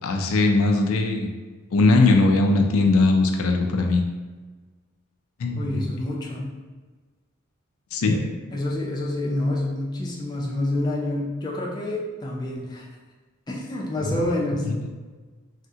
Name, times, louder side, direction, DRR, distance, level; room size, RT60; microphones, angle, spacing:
voice 1, 0.0-1.3 1.7-4.0 5.4-5.8 7.9-8.3 14.1-14.2, left 3 dB, 90° left, 3 dB, 0.4 m, -20 dB
voice 2, 5.5-6.5 8.1-8.2 8.5-12.8 13.5-14.7, left 1 dB, 20° left, -4 dB, 0.4 m, -28 dB
3.5 x 2.1 x 2.7 m, 1.4 s
head